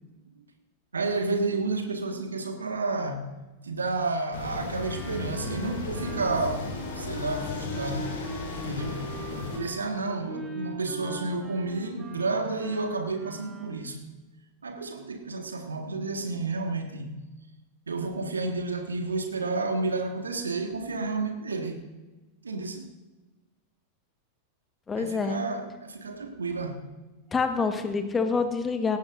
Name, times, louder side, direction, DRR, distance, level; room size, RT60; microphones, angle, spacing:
voice 1, 0.9-3.3 3.6-8.1 8.6-9.1 9.6-14.0 14.6-17.2 17.9-21.8 22.4-22.9 24.9-26.9, right 3 dB, 75° right, 5 dB, 1.7 m, -31 dB
sound 1, 4.3-9.6, left 3 dB, 60° left, 2.7 m, -35 dB
Wind instrument woodwind instrument, 4.7-13.7, right 2 dB, 25° right, 3.0 m, -42 dB
voice 2, 24.9-25.4 27.3-29.0, left 4 dB, 15° left, 7 dB, 1.3 m, -26 dB
17.5 x 16.0 x 2.6 m, 1.1 s
figure-of-eight pair, 90°, 0 cm